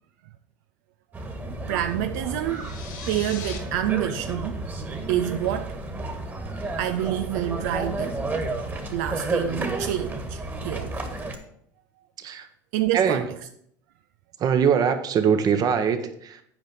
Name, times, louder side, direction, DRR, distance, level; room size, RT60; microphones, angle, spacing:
sound 1, 1.1-11.4, right 2 dB, 20° right, 1.7 m, -32 dB
voice 1, 1.7-4.6 5.1-5.8 6.8-8.2 8.9-11.0 12.7-13.3, right 12 dB, 75° right, 0.4 m, -28 dB
sound 2, 2.4-3.6, left 7 dB, 85° left, 1.8 m, -39 dB
voice 2, 12.9-13.3 14.4-16.4, right 7 dB, 40° right, 1.1 m, -22 dB
8.8 x 5.1 x 6.1 m
supercardioid pair, 95°, 9 cm